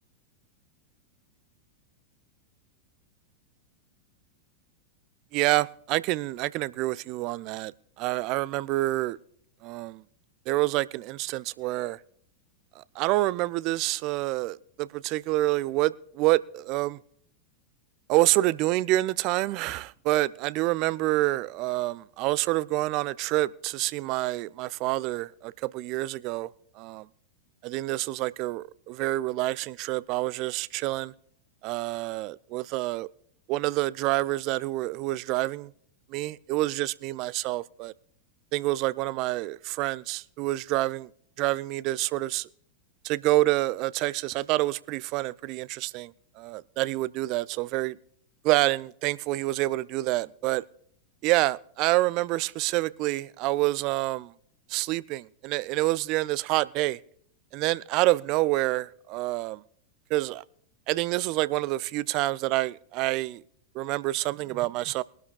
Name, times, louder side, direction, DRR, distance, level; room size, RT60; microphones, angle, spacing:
voice 1, 5.3-7.7 8.0-9.2 9.6-10.0 10.5-12.0 12.8-17.0 18.1-26.5 26.8-27.1 27.6-31.1 31.6-33.1 33.5-35.7 36.1-37.9 38.5-41.1 41.4-42.5 43.0-46.1 46.4-48.0 48.4-50.6 51.2-54.3 54.7-57.0 57.5-59.6 60.1-60.4 60.9-63.4 63.7-65.0, right 18 dB, 40° right, 0.4 m, -27 dB
21.5 x 12.0 x 2.3 m
figure-of-eight pair, 90°, 0 cm